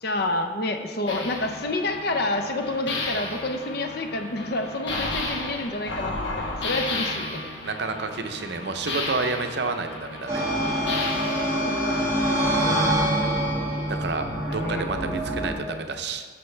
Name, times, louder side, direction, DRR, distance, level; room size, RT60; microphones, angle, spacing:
voice 1, 0.0-7.4 11.9-12.1 12.6-13.3 14.3-14.8, left 2 dB, 50° left, 5 dB, 0.7 m, -29 dB
sound 1, 1.1-12.3, left 2 dB, 70° left, 1.2 m, -33 dB
voice 2, 7.6-10.5 12.4-12.9 13.9-16.2, right 3 dB, 55° right, 7 dB, 0.6 m, -30 dB
sound 2, 10.3-15.5, right 1 dB, 15° right, 2.0 m, -25 dB
13.5 x 5.7 x 3.3 m, 1.5 s
head